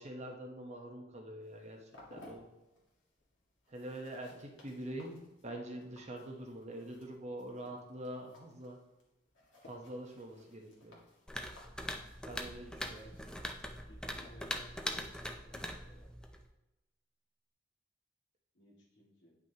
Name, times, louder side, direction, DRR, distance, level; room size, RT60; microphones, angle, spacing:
voice 1, 0.0-2.5 3.7-8.8 9.6-11.0 12.3-13.1, right 1 dB, 35° right, 1 dB, 1.1 m, -45 dB
sound 1, 1.4-16.1, left 2 dB, 85° left, 1.9 m, -62 dB
sound 2, 11.3-16.5, equal, 5° left, 0.5 m, -42 dB
voice 2, 12.5-13.2 13.8-16.1 18.5-19.4, right 1 dB, 65° left, -3 dB, 2.2 m, -59 dB
9.2 x 5.9 x 2.9 m, 1.0 s
head